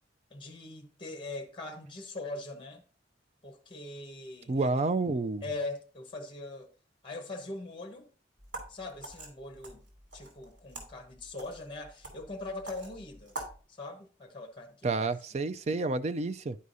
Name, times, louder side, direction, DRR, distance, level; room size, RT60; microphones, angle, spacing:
voice 1, 0.3-2.8 3.4-4.8 5.4-6.7 7.0-8.1 8.7-9.8 10.1-13.3 13.7-15.1, left 2 dB, 30° left, 1.1 m, -41 dB
voice 2, 4.5-5.4 14.8-16.6, right 3 dB, 40° right, 0.4 m, -29 dB
sound 1, 8.4-13.6, right 2 dB, 90° right, 2.7 m, -46 dB
11.5 x 4.8 x 2.7 m
head